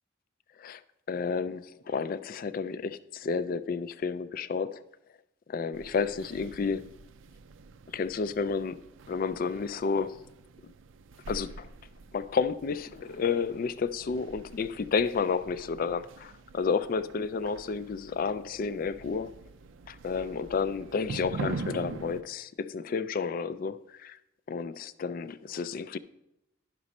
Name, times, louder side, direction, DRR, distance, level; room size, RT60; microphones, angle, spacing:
voice 1, 1.1-4.8 5.5-6.9 7.9-8.8 9.1-10.2 11.3-11.7 12.1-19.3 19.9-24.1 24.5-26.0, left 5 dB, 45° left, 0.3 m, -31 dB
sound 1, 5.7-22.2, right 4 dB, 75° right, 0.4 m, -44 dB
10.5 x 6.0 x 4.2 m
head